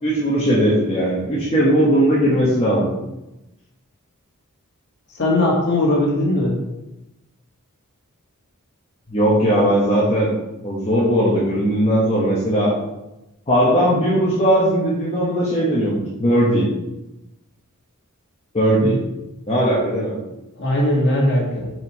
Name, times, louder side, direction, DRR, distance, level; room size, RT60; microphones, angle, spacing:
voice 1, 0.0-2.9 9.1-10.3 10.6-12.8 13.5-16.7 18.5-19.0 19.5-20.2, equal, 30° left, -7 dB, 1.1 m, -18 dB
voice 2, 5.1-6.6 18.8-19.0 20.5-21.7, left 1 dB, 50° left, -3 dB, 1.8 m, -19 dB
4.9 x 4.4 x 4.7 m, 0.96 s
head